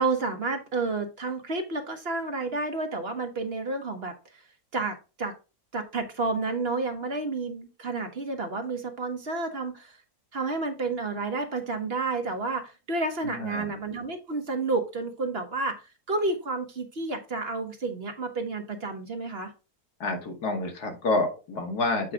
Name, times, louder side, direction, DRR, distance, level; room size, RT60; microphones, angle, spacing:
voice 1, 0.0-4.4 4.7-5.3 5.7-10.0 10.3-19.5, right 3 dB, 45° right, 5 dB, 1.1 m, -30 dB
voice 2, 13.2-13.7 20.0-22.1, left 2 dB, 85° left, 4 dB, 2.0 m, -28 dB
7.7 x 4.7 x 3.6 m, 0.30 s
omnidirectional pair, 1.6 m